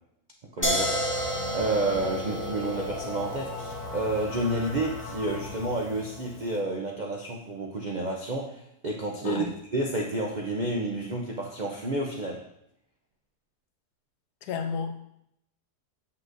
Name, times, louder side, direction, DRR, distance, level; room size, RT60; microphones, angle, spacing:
voice 1, 0.5-1.0 1.5-12.4, right 2 dB, 70° right, -1 dB, 0.4 m, -30 dB
sound 1, 0.6-7.4, left 1 dB, 40° left, 3.0 m, -42 dB
sound 2, 0.6-6.4, equal, 15° left, 0.4 m, -33 dB
voice 2, 14.4-14.9, left 6 dB, 80° left, 7 dB, 1.2 m, -31 dB
7.6 x 5.7 x 2.6 m, 0.77 s
omnidirectional pair, 1.7 m